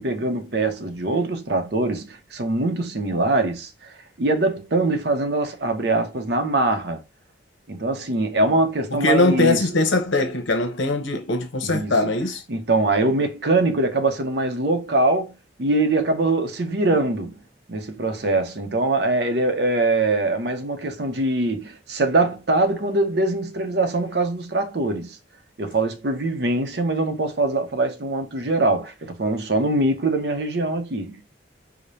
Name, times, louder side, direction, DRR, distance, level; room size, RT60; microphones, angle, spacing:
voice 1, 0.0-7.0 7.7-9.7 11.6-12.1 12.5-17.4 17.7-25.2 25.6-31.2, right 2 dB, 60° right, 0.7 m, -23 dB
voice 2, 8.9-12.4, left 2 dB, 90° left, 0.8 m, -21 dB
4.8 x 2.1 x 2.6 m
head